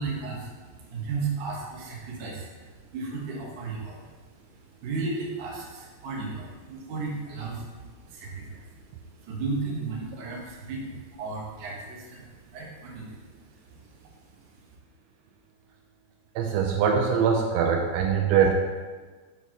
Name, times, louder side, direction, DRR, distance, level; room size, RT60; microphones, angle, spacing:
voice 1, 0.0-4.2 4.5-8.6 8.9-13.2 13.7-14.1, right 4 dB, 65° right, -4 dB, 1.9 m, -35 dB
voice 2, 16.4-18.5, right 7 dB, 85° right, 2 dB, 2.8 m, -22 dB
8.2 x 5.5 x 3.0 m, 1.4 s
omnidirectional pair, 5.5 m